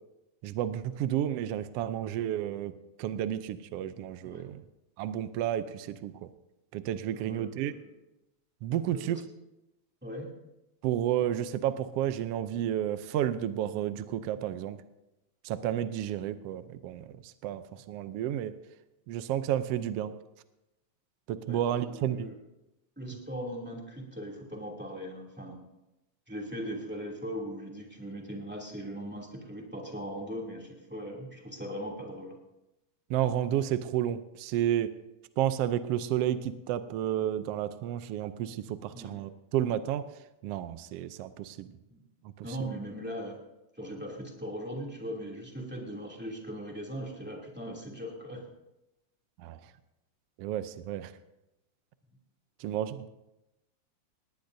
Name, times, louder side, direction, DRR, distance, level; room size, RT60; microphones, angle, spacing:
voice 1, 0.4-2.7 3.0-4.6 5.0-6.3 6.7-7.7 8.6-9.2 10.8-14.8 15.4-18.5 19.1-20.1 21.3-22.3 33.1-34.9 35.4-40.0 40.4-41.7 42.4-42.5 49.4-49.6 50.4-51.1 52.6-53.1, right 11 dB, 80° right, 11 dB, 1.4 m, -31 dB
voice 2, 7.1-7.9 8.9-9.2 10.0-10.3 21.5-22.4 23.0-25.6 26.3-32.4 38.9-39.1 41.9-42.0 42.4-43.4 43.8-48.4, equal, 5° right, -1 dB, 2.2 m, -39 dB
19.0 x 18.5 x 2.7 m, 0.94 s
omnidirectional pair, 3.4 m